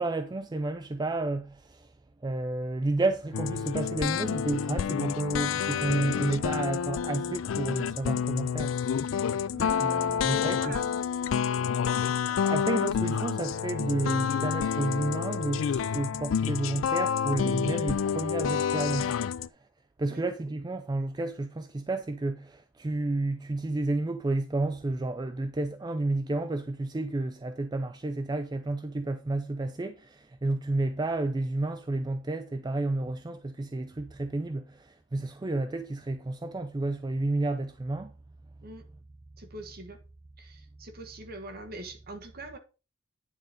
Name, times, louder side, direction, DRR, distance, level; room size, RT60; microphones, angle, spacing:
voice 1, 0.0-1.9 2.2-9.1 9.8-10.8 12.4-19.2 20.0-38.1, right 2 dB, 20° right, 0.4 m, -31 dB
sound 1, 3.3-19.5, left 7 dB, 75° left, 0.4 m, -29 dB
voice 2, 9.5-11.2 11.9-12.0 20.1-20.3 38.6-38.9 39.4-40.0 40.4-42.6, right 2 dB, 50° right, 1.4 m, -43 dB
9.7 x 3.9 x 5.0 m
head